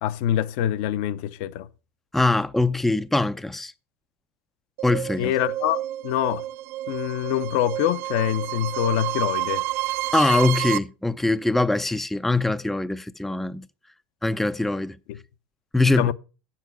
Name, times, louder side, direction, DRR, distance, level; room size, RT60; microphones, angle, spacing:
voice 1, 0.0-1.7 5.2-6.4 6.9-9.6 15.1-15.2 16.0-16.1, left 11 dB, 65° left, 0.7 m, -25 dB
voice 2, 2.1-3.7 4.8-5.3 10.1-13.7 14.2-15.0 15.7-16.1, left 2 dB, 5° left, 0.4 m, -22 dB
sound 1, 4.8-10.8, right 16 dB, 75° right, 0.8 m, -30 dB
8.9 x 7.4 x 6.0 m
supercardioid pair, 115°, 7 cm